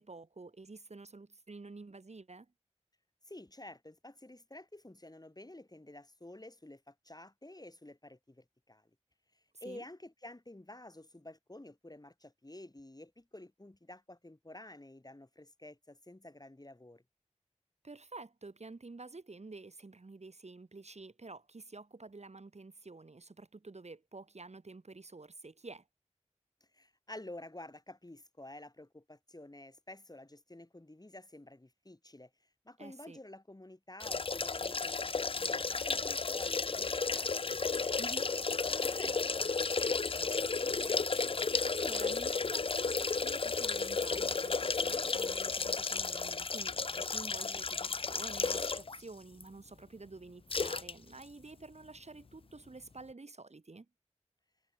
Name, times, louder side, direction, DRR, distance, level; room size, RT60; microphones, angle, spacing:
voice 1, 0.0-2.5 9.6-9.8 17.8-25.8 32.8-33.2 38.0-38.3 41.7-53.9, right 3 dB, 65° right, 1.1 m, -49 dB
voice 2, 3.3-8.9 9.6-17.0 26.7-32.3 32.6-37.9 38.7-41.0, left 1 dB, 30° left, 2.8 m, -51 dB
sound 1, 34.0-49.0 49.4-49.5 50.5-50.9 51.2-51.3, left 4 dB, 50° left, 0.4 m, -33 dB
wide cardioid pair, 55°, 12 cm